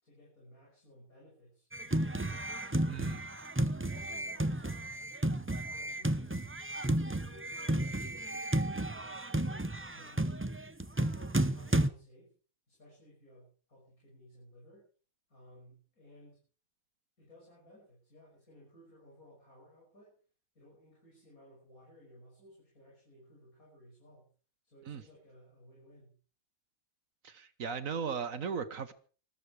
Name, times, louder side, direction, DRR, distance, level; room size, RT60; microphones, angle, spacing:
voice 1, 0.0-3.4 3.8-5.0 5.3-6.4 6.9-9.6 9.9-10.4 11.1-12.3 12.7-14.9 15.3-16.4 17.2-20.1 20.6-24.3 24.6-26.1, equal, 85° left, -4 dB, 7.3 m, -58 dB
sound 1, 1.7-11.9, right 1 dB, 10° right, 0.6 m, -33 dB
voice 2, 2.9-3.2 24.9-25.0 27.2-28.9, right 6 dB, 70° right, 11 dB, 1.6 m, -37 dB
21.0 x 14.0 x 4.8 m, 0.41 s
omnidirectional pair, 1.5 m